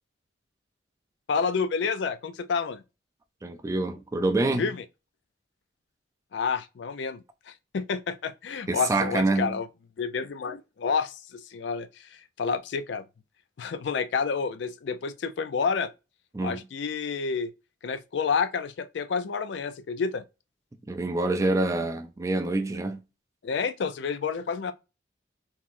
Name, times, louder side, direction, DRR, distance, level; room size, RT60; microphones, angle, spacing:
voice 1, 1.3-2.8 4.6-4.8 6.3-9.7 10.0-12.1 12.4-13.0 13.6-15.9 16.4-17.5 17.8-20.2 23.4-24.7, left 5 dB, 65° left, 0.4 m, -29 dB
voice 2, 3.4-4.7 8.7-9.6 16.3-16.6 20.9-23.0, right 2 dB, 15° right, 0.4 m, -26 dB
3.7 x 3.0 x 2.5 m
head